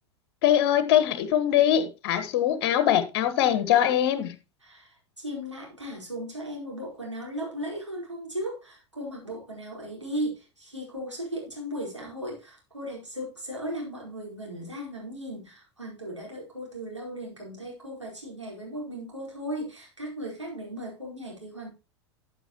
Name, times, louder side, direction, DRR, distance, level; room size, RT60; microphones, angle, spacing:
voice 1, 0.4-4.3, left 11 dB, 50° left, 1.4 m, -22 dB
voice 2, 4.6-21.7, equal, 90° right, 4.6 m, -36 dB
13.5 x 6.9 x 3.0 m
figure-of-eight pair, 85°, 15 cm